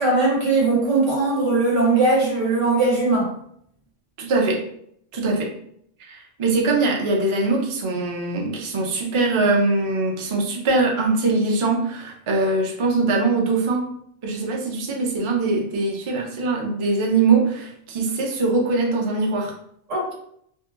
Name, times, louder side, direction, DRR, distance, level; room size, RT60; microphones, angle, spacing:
voice 1, 0.0-3.3 19.9-20.1, right 3 dB, 85° right, -3 dB, 1.4 m, -20 dB
voice 2, 4.2-4.6 5.1-5.5 6.0-13.8 14.2-19.5, right 3 dB, 50° right, 0 dB, 0.3 m, -22 dB
2.7 x 2.6 x 2.4 m, 0.69 s
omnidirectional pair, 1.2 m